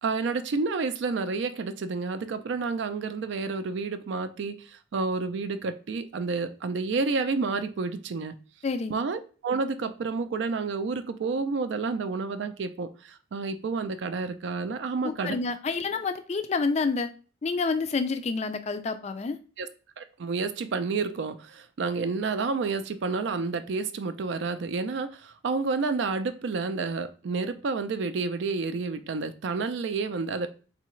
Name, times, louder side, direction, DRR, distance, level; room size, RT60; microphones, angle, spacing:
voice 1, 0.0-8.3 8.9-15.4 19.6-19.7 20.0-30.5, right 4 dB, 65° right, 10 dB, 0.4 m, -30 dB
voice 2, 8.6-8.9 15.0-17.1 17.4-19.4, left 4 dB, 35° left, 9 dB, 0.3 m, -28 dB
3.7 x 3.3 x 3.1 m, 0.37 s
head